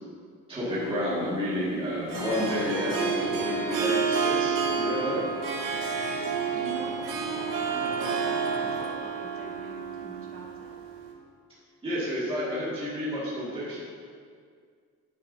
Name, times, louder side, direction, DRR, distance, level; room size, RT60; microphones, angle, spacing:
voice 1, 0.5-5.2 11.8-13.8, equal, 15° right, -10 dB, 2.2 m, -30 dB
Harp, 0.7-11.1, right 6 dB, 85° right, 1.6 m, -30 dB
Traffic noise roadway noise, 2.1-9.0, left 7 dB, 85° left, 0.7 m, -42 dB
voice 2, 5.8-10.8, right 3 dB, 40° right, -2 dB, 1.6 m, -44 dB
9.5 x 9.3 x 2.8 m, 2.1 s
cardioid pair, 150°, 32 cm